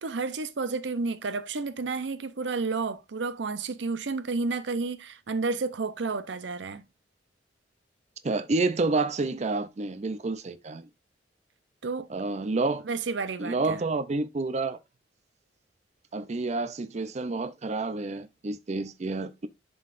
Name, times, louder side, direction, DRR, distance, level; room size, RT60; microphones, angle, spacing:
voice 1, 0.0-6.8 11.8-12.1 12.8-13.8, right 4 dB, 80° right, 0.6 m, -31 dB
voice 2, 8.2-10.9 12.1-12.8 13.4-14.8 16.1-19.5, right 3 dB, 40° right, 0.5 m, -29 dB
11.0 x 3.9 x 2.5 m
head